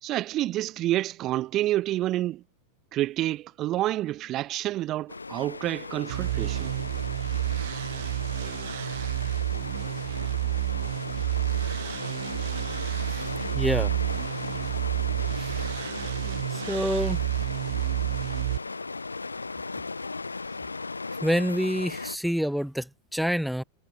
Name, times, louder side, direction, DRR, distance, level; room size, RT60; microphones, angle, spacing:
voice 1, 0.0-2.4 2.9-6.7, right 15 dB, 35° right, 0.8 m, -28 dB
sound 1, 5.1-22.2, left 3 dB, 80° left, 1.4 m, -36 dB
sound 2, 6.1-18.6, right 17 dB, 55° right, 2.7 m, -30 dB
voice 2, 13.5-14.0 15.4-15.5 16.5-17.2 21.2-23.6, equal, ahead, 1.0 m, -27 dB
figure-of-eight pair, 90°, 0 cm